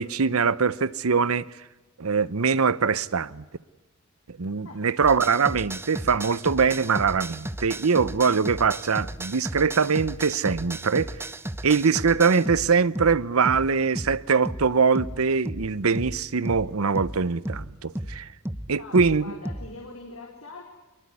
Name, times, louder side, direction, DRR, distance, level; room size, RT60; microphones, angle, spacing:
voice 1, 0.0-1.5 2.0-3.4 4.3-11.1 11.6-18.3 18.7-19.3, right 5 dB, 85° right, 0.8 m, -23 dB
sound 1, 5.0-19.8, right 1 dB, 10° right, 0.9 m, -35 dB
voice 2, 18.8-20.6, left 2 dB, 75° left, 4.4 m, -42 dB
24.0 x 21.0 x 9.7 m
head